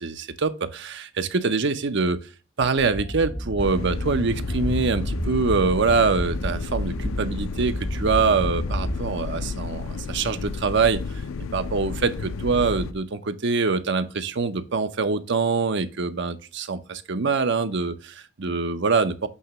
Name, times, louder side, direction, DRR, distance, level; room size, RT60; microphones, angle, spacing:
voice 1, 0.0-2.2 2.6-11.2 11.5-19.3, right 4 dB, 60° right, 0.7 m, -24 dB
sound 1, 2.8-9.0, equal, 55° left, 2.3 m, -31 dB
sound 2, 3.6-12.9, left 4 dB, 85° left, 0.5 m, -32 dB
8.4 x 3.0 x 5.9 m
head